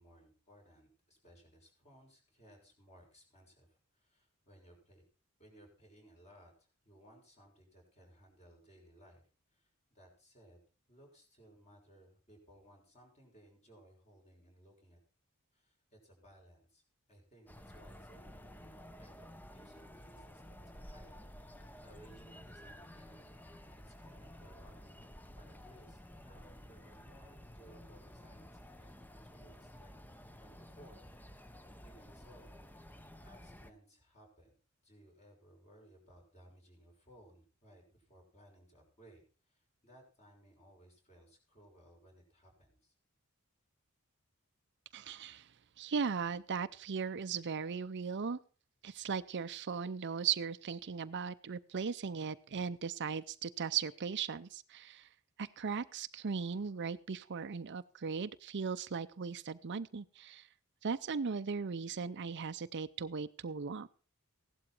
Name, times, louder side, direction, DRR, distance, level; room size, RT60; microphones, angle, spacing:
voice 1, 0.0-5.0 5.4-9.2 9.5-15.0 15.5-16.8 17.1-21.2 21.8-23.4 23.9-24.9 25.3-30.1 30.4-31.0 31.8-34.5 34.8-42.9, right 1 dB, 30° left, 1 dB, 6.0 m, -61 dB
sound 1, 17.5-33.7, equal, 10° left, 0.8 m, -53 dB
voice 2, 44.9-45.5 45.8-48.4 48.8-55.1 55.4-60.5 60.8-63.9, right 6 dB, 55° right, 13 dB, 0.6 m, -38 dB
16.5 x 11.5 x 4.4 m, 0.37 s
head